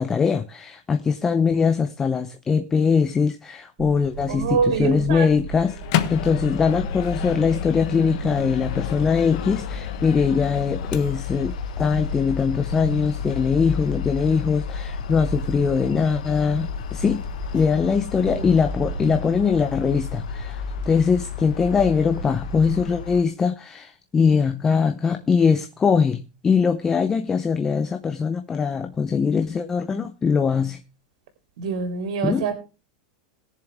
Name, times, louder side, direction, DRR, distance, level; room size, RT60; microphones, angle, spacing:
voice 1, 0.0-5.8 6.1-17.2 17.5-30.8 32.2-32.4, left 5 dB, 10° left, 0.6 m, -22 dB
sound 1, 3.8-22.8, right 3 dB, 35° right, 3.3 m, -36 dB
voice 2, 4.3-5.3 18.3-18.5 31.6-32.5, right 6 dB, 60° right, 3.4 m, -25 dB
Microwave oven, 5.5-11.5, left 11 dB, 45° left, 1.2 m, -32 dB
Distant Highway from Train Platform, 6.1-23.2, left 10 dB, 85° left, 1.2 m, -33 dB
20.5 x 7.0 x 3.4 m
supercardioid pair, 175°, 4 cm